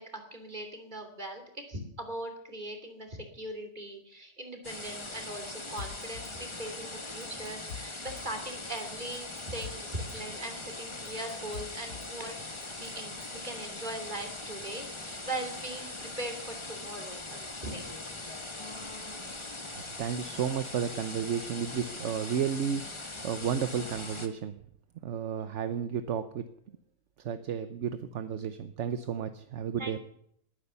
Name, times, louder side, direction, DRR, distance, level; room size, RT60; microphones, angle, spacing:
voice 1, 0.0-12.4 12.7-17.8 25.4-25.5 29.8-30.0, right 1 dB, 30° right, 5 dB, 3.1 m, -40 dB
sound 1, 4.6-24.3, left 2 dB, 20° left, 1.3 m, -41 dB
Drum kit, 5.8-6.3 6.7-6.8 7.1-8.3 8.7-8.8 9.1-10.2 10.6-10.7 10.9-12.1 12.5-13.4, left 6 dB, 60° left, 1.4 m, -45 dB
voice 2, 19.7-24.6 25.0-26.4 27.2-30.0, right 8 dB, 55° right, 11 dB, 1.0 m, -33 dB
20.0 x 9.7 x 6.9 m, 0.70 s
omnidirectional pair, 1.6 m